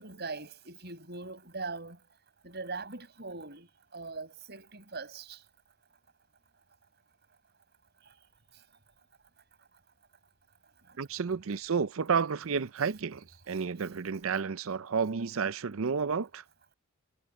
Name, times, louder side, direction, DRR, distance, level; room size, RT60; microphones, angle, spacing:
voice 1, 0.0-2.0 2.4-5.4, right 3 dB, 50° right, 5.8 m, -41 dB
voice 2, 11.0-16.4, right 5 dB, 70° right, 0.6 m, -31 dB
head